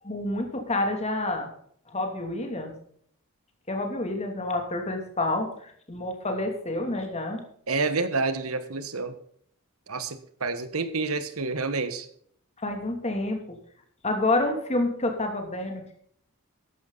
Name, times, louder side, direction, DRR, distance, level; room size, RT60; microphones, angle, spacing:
voice 1, 0.0-1.5 1.9-2.7 3.7-7.4 12.6-13.6 14.0-16.0, left 2 dB, 30° left, 4 dB, 2.8 m, -28 dB
voice 2, 7.7-9.1 9.9-12.1, right 3 dB, 85° right, 11 dB, 1.5 m, -28 dB
13.5 x 11.0 x 4.1 m, 0.63 s
head